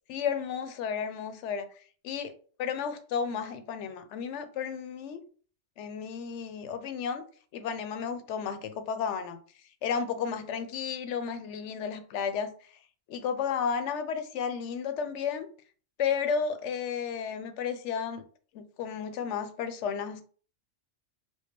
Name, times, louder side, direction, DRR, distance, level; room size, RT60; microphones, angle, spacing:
voice 1, 0.1-1.7 2.0-2.3 2.6-5.2 5.8-7.2 7.5-9.4 9.8-12.5 13.1-15.5 16.0-18.2 18.5-20.2, left 6 dB, 80° left, 0.9 m, -32 dB
4.6 x 2.1 x 2.9 m
omnidirectional pair, 1.2 m